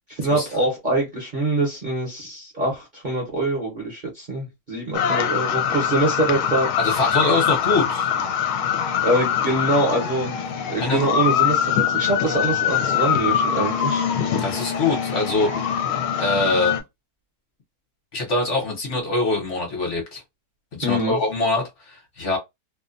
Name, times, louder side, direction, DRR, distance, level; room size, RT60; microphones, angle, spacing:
voice 1, 0.1-6.7 9.0-10.3 10.7-14.0 20.8-21.2, right 1 dB, 40° right, 0.7 m, -24 dB
sound 1, 4.9-16.8, left 8 dB, 75° left, 1.0 m, -23 dB
voice 2, 6.8-8.1 10.8-11.1 14.4-15.5 16.2-16.8 18.1-20.2 20.7-22.4, left 2 dB, 55° left, 1.1 m, -23 dB
2.7 x 2.1 x 2.5 m
omnidirectional pair, 1.7 m